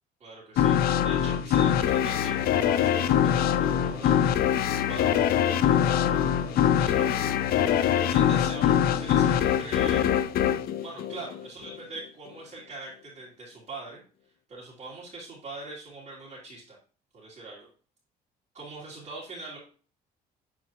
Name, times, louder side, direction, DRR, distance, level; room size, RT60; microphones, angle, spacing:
voice 1, 0.2-4.6 4.8-5.2 5.6-10.1 10.8-14.0 14.5-16.8 17.1-17.7 18.5-19.6, right 2 dB, 45° right, -6 dB, 2.9 m, -42 dB
sound 1, 0.6-11.7, left 9 dB, 65° left, 0.5 m, -23 dB
8.8 x 4.3 x 2.9 m, 0.39 s
cardioid pair, 110°, 17 cm